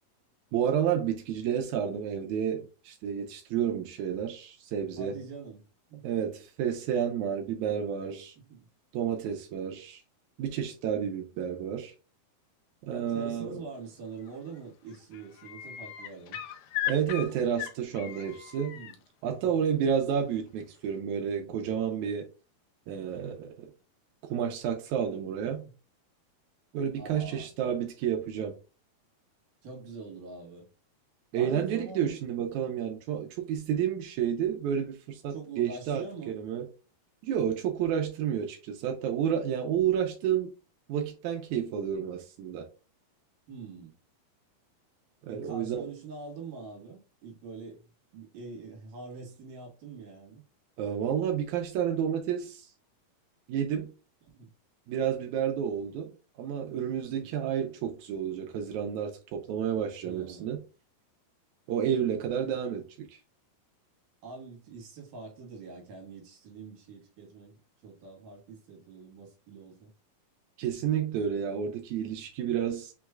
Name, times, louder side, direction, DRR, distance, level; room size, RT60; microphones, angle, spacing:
voice 1, 0.5-5.2 6.0-8.3 8.9-10.0 10.4-11.9 12.9-13.6 16.9-18.8 19.2-22.3 22.9-23.7 24.3-25.6 26.7-28.6 31.3-36.7 37.2-40.5 40.9-42.7 45.3-45.9 50.8-52.6 53.5-53.9 54.9-60.6 61.7-63.2 70.6-72.9, right 8 dB, 85° right, 1.7 m, -30 dB
voice 2, 5.0-5.6 5.9-6.2 8.5-8.7 12.9-16.4 18.7-19.0 19.3-19.6 25.4-25.7 27.0-27.5 29.6-30.7 31.3-32.2 35.3-36.4 43.5-43.9 45.3-50.4 54.3-54.5 57.0-57.3 60.0-60.6 64.2-69.9, right 4 dB, 65° right, 2.9 m, -44 dB
sound 1, 14.2-14.6 14.9-18.9 20.6-20.7, left 12 dB, 75° left, 2.0 m, -37 dB
6.2 x 3.1 x 2.3 m
omnidirectional pair, 4.4 m